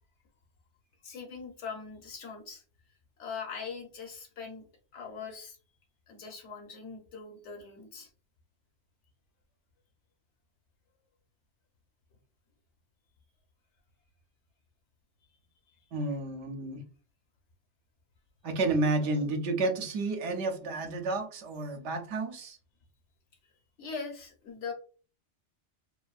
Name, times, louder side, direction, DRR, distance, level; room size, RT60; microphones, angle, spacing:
voice 1, 1.0-2.6 3.2-4.6 4.9-5.6 6.1-8.1 15.7-15.8 23.4-23.5 23.8-24.7, left 5 dB, 80° left, 2 dB, 1.1 m, -41 dB
voice 2, 15.9-16.8 18.4-22.6, right 2 dB, 75° right, 4 dB, 0.9 m, -31 dB
2.6 x 2.5 x 2.3 m, 0.38 s
omnidirectional pair, 1.2 m